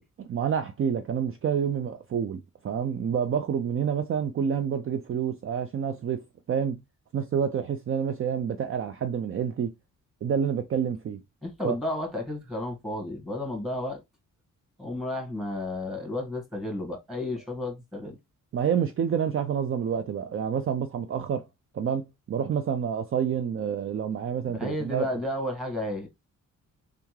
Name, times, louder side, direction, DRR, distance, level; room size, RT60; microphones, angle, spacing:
voice 1, 0.2-6.8 7.1-9.7 10.2-11.2 11.6-11.8 18.5-21.5 21.7-25.1, right 8 dB, 40° right, 0.4 m, -28 dB
voice 2, 11.4-14.0 14.8-18.2 24.4-26.1, left 1 dB, ahead, 1.6 m, -32 dB
3.6 x 3.4 x 3.1 m
cardioid pair, 100°, 33 cm